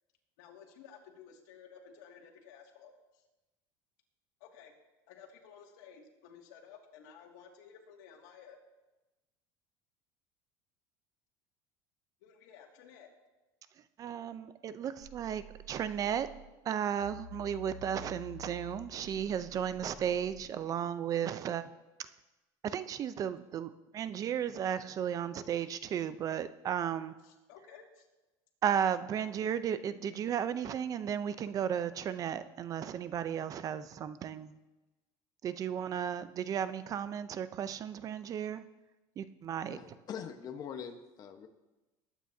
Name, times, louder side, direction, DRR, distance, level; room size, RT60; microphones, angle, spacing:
voice 1, 0.4-3.2 4.4-4.7 5.1-8.6 12.2-13.1 27.2-28.1, left 7 dB, 85° left, 1 dB, 2.2 m, -54 dB
voice 2, 14.0-16.3 16.6-21.6 22.6-27.1 28.6-34.6 35.4-38.6 39.2-40.0, right 9 dB, 35° right, 13 dB, 0.6 m, -34 dB
sound 1, 15.0-16.5 17.0-20.5, left 2 dB, 90° right, 4.7 m, -50 dB
voice 3, 39.7-41.5, left 7 dB, 40° left, 7 dB, 1.2 m, -43 dB
20.0 x 9.1 x 2.8 m, 1.1 s
supercardioid pair, 125°, 10 cm